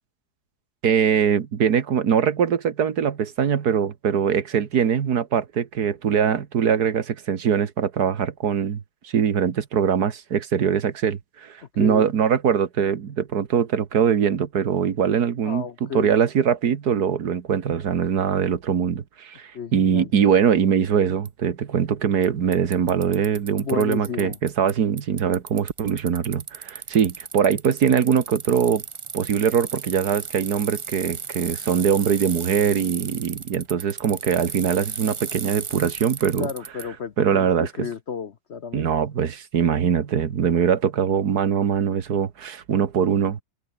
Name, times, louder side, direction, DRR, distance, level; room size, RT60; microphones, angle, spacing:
voice 1, 0.8-28.8 29.1-36.5 37.2-37.9 38.7-43.4, right 7 dB, 70° right, 2.0 m, -22 dB
voice 2, 11.7-12.1 15.4-16.1 19.5-20.1 23.6-24.4 36.3-38.9, left 7 dB, 50° left, 1.0 m, -32 dB
Bicycle, 21.2-21.3 22.2-22.3 22.5-24.7 25.0-36.8, right 5 dB, 45° right, 0.4 m, -35 dB
omnidirectional pair, 1.7 m